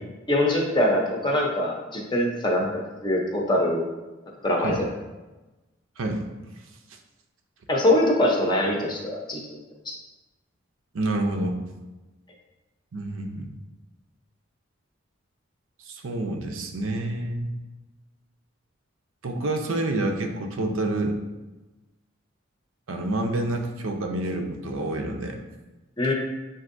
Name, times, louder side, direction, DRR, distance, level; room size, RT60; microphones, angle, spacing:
voice 1, 0.3-3.8 4.4-4.7 7.7-9.6 9.9-10.0 26.0-26.1, left 1 dB, 20° left, -1 dB, 0.6 m, -23 dB
voice 2, 10.9-11.6 12.9-13.5 15.9-17.5 19.2-21.2 22.9-25.4, right 2 dB, 75° right, 4 dB, 0.5 m, -28 dB
7.2 x 2.6 x 2.5 m, 1.1 s
head